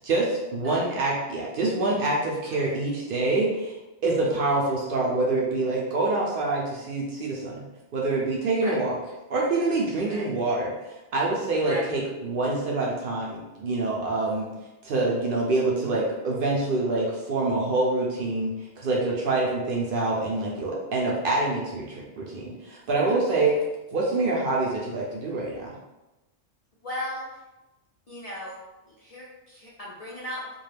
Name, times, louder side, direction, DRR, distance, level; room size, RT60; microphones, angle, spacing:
voice 1, 0.0-3.7 4.0-7.6 7.9-8.9 9.3-14.5 14.8-23.5 23.9-25.8, right 2 dB, 60° right, -3 dB, 0.6 m, -26 dB
voice 2, 0.6-1.0 2.6-2.7 4.2-4.4 8.6-8.8 10.1-10.3 11.6-11.9 14.2-14.3 21.1-21.2 23.3-23.4 26.8-27.4 28.1-28.6 28.9-30.5, equal, 50° left, -7 dB, 0.4 m, -37 dB
2.3 x 2.2 x 3.2 m, 1.0 s
omnidirectional pair, 1.2 m